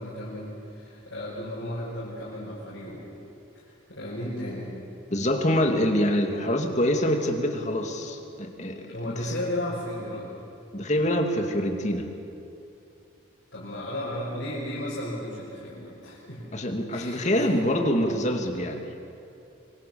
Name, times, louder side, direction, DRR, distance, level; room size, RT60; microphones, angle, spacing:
voice 1, 0.0-3.0 3.9-4.7 8.8-10.3 13.5-16.4 16.9-17.6, left 1 dB, 65° left, -8 dB, 6.2 m, -34 dB
voice 2, 5.1-9.3 10.7-12.1 16.5-18.9, equal, 35° left, 4 dB, 2.4 m, -25 dB
25.5 x 24.0 x 7.1 m, 2.7 s
head